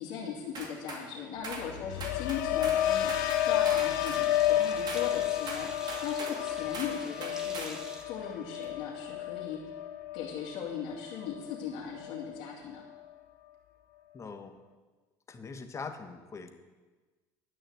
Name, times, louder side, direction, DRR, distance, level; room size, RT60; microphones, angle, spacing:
voice 1, 0.0-3.1 3.4-7.8 8.0-9.6 10.1-12.8, left 7 dB, 65° left, -6 dB, 2.6 m, -39 dB
sound 1, 0.5-1.0 1.4-1.7 2.0-2.8 3.1-4.2 4.9-5.1 5.5-6.4 6.7-7.0 7.2-7.8, right 3 dB, 45° right, 2.5 m, -41 dB
sound 2, 1.5-11.6 12.0-12.4, left 12 dB, 85° left, 0.5 m, -31 dB
Sink (filling or washing), 2.5-8.9, equal, 5° right, 1.9 m, -47 dB
voice 2, 14.1-14.6 15.3-16.5, left 4 dB, 30° left, 7 dB, 1.4 m, -42 dB
11.5 x 6.3 x 7.8 m, 1.3 s
supercardioid pair, 80°, 10 cm